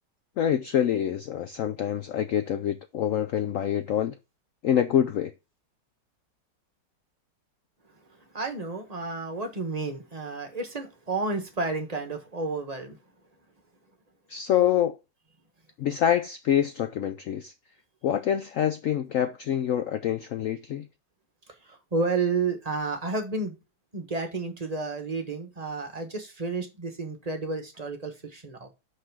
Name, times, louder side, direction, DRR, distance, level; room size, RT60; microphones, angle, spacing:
voice 1, 0.4-4.2 4.6-5.3 14.3-15.0 15.8-17.5 18.0-20.9, left 10 dB, 75° left, 0.7 m, -26 dB
voice 2, 8.1-13.0 21.6-23.6 23.9-28.7, right 3 dB, 25° right, 1.1 m, -31 dB
5.7 x 5.6 x 4.6 m
omnidirectional pair, 1.9 m